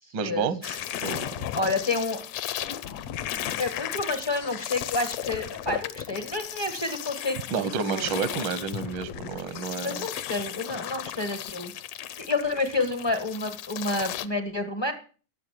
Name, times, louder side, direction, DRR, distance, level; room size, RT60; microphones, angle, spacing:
voice 1, 0.1-1.3 7.5-10.1, right 6 dB, 65° right, 14 dB, 1.1 m, -30 dB
sound 1, 0.6-14.3, left 11 dB, 70° left, 1.8 m, -35 dB
voice 2, 1.5-2.2 3.6-8.1 9.8-11.7 12.2-14.9, left 3 dB, 45° left, 7 dB, 0.3 m, -29 dB
17.0 x 7.3 x 7.6 m, 0.40 s
omnidirectional pair, 3.3 m